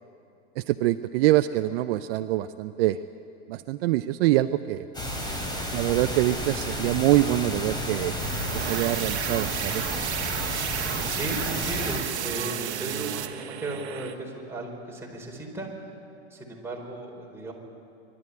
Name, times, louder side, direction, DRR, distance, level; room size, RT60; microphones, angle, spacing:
voice 1, 0.6-3.0 3.5-4.8 5.7-8.2 8.5-9.9, right 15 dB, 60° right, 11 dB, 0.7 m, -24 dB
sound 1, 4.9-12.0, equal, 10° left, 3.8 m, -32 dB
sound 2, 8.2-14.1, right 11 dB, 80° right, 1.4 m, -32 dB
voice 2, 10.7-16.0 16.3-17.5, right 2 dB, 5° right, -2 dB, 4.7 m, -36 dB
24.0 x 13.0 x 9.8 m, 2.6 s
hypercardioid pair, 110°, 33 cm